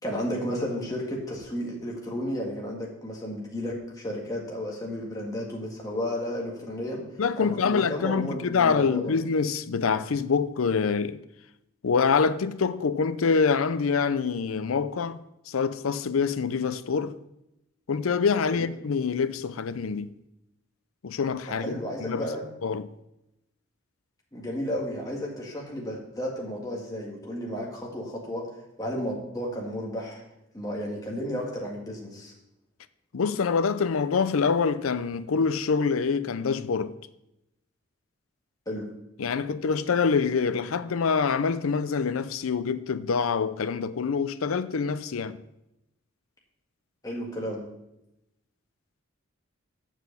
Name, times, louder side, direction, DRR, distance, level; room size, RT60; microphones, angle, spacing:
voice 1, 0.0-7.0 7.4-9.1 18.5-18.7 21.6-22.4 24.3-28.5 28.8-30.2 30.5-32.3 38.7-38.9 47.0-47.6, equal, 15° left, 1.9 m, -33 dB
voice 2, 7.2-11.2 11.8-15.2 15.5-17.2 17.9-20.1 21.0-22.3 22.6-22.9 33.1-37.0 39.2-45.4, left 5 dB, 85° left, 0.5 m, -25 dB
7.4 x 6.2 x 6.8 m
head